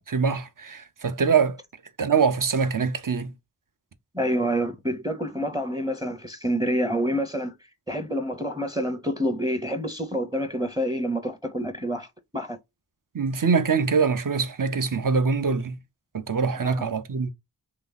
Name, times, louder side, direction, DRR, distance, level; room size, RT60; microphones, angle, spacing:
voice 1, 0.0-1.6 2.0-3.3 13.1-15.8 16.1-17.3, right 5 dB, 50° right, 0.6 m, -24 dB
voice 2, 4.1-12.1 12.3-12.6 16.6-16.9, equal, 10° right, 0.7 m, -28 dB
3.1 x 2.9 x 3.8 m
wide cardioid pair, 40°, 42 cm